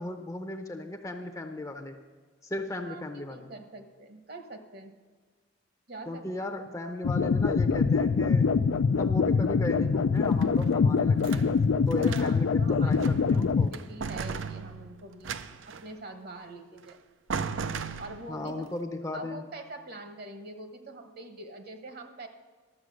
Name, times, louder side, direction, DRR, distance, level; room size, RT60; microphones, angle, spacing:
voice 1, 0.0-2.0 2.4-3.5 6.1-8.5 8.9-11.5 11.9-13.7 18.3-19.4, left 2 dB, 15° left, 5 dB, 0.6 m, -36 dB
voice 2, 2.8-4.9 5.9-6.5 11.9-15.4 15.7-17.0 18.0-18.7 19.1-22.3, right 2 dB, 50° right, 7 dB, 1.1 m, -44 dB
sound 1, 7.0-13.7, left 5 dB, 70° left, 0.4 m, -24 dB
sound 2, 10.2-11.5 11.9-12.5 12.9-13.4 13.7-15.9 16.8-16.9 17.3-18.5, right 5 dB, 65° right, 0.5 m, -37 dB
12.0 x 7.3 x 6.3 m, 1.5 s
head